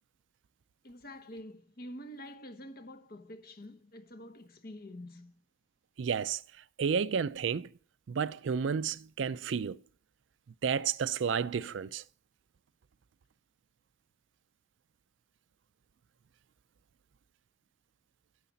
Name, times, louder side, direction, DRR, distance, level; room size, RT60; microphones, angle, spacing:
voice 1, 0.8-5.4, left 1 dB, 55° left, 1.0 m, -47 dB
voice 2, 6.0-6.4 6.8-7.7 8.1-9.8 10.6-12.0, right 6 dB, 85° right, 0.4 m, -31 dB
11.5 x 7.2 x 4.0 m
head